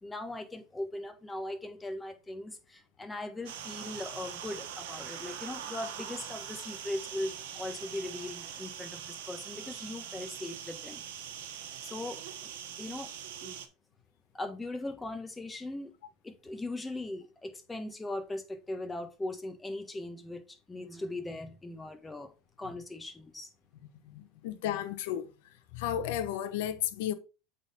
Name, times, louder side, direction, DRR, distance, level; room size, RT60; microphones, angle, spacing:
voice 1, 0.0-11.0 11.8-12.5 12.8-13.1 13.4-13.6 14.3-15.9 16.2-22.3 22.6-23.5, left 2 dB, 15° left, 1.5 m, -39 dB
sound 1, 3.5-13.7, right 9 dB, 75° right, 1.2 m, -42 dB
voice 2, 24.1-25.3 25.7-27.1, left 10 dB, 75° left, 1.0 m, -33 dB
8.0 x 3.9 x 4.3 m
supercardioid pair, 100°, 0 cm